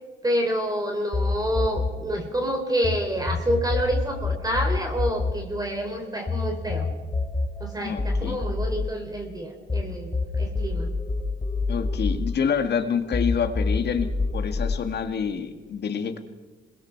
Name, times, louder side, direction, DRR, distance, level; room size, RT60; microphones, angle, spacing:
voice 1, 0.2-6.9 7.6-10.1 10.4-10.9, equal, 20° right, 3 dB, 3.7 m, -28 dB
sound 1, 1.1-3.0 3.3-9.8 10.1-12.8 13.1-14.8, left 3 dB, 20° left, 4.2 m, -26 dB
voice 2, 7.8-8.4 11.7-16.2, left 7 dB, 55° left, 8 dB, 2.0 m, -27 dB
26.5 x 21.0 x 4.7 m, 1.3 s
cardioid pair, 90°, 20 cm